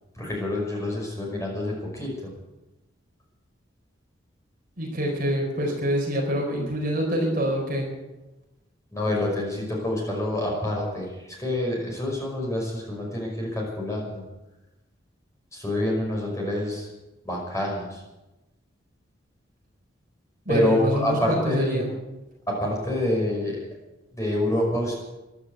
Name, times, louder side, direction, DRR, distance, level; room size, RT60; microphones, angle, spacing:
voice 1, 0.2-2.1 8.9-11.1 11.4-14.2 15.5-16.9 17.2-18.0 20.5-21.8 22.5-23.6 24.1-24.9, left 1 dB, 15° left, -2 dB, 5.6 m, -27 dB
voice 2, 4.8-7.9 20.4-21.9, equal, 45° right, 0 dB, 4.5 m, -26 dB
15.0 x 11.5 x 8.0 m, 1.0 s
head